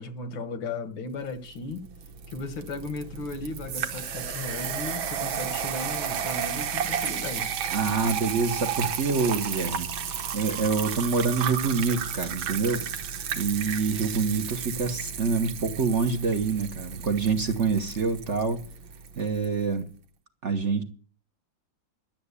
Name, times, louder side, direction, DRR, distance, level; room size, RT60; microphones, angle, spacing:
voice 1, 0.0-1.9 2.3-7.5, left 3 dB, 80° left, 2.0 m, -36 dB
sound 1, 1.5-19.5, right 8 dB, 85° right, 1.9 m, -33 dB
voice 2, 7.7-9.9 10.3-12.9 13.3-18.6 19.2-19.8 20.4-20.8, right 4 dB, 45° right, 1.2 m, -26 dB
12.0 x 7.6 x 8.3 m
omnidirectional pair, 2.1 m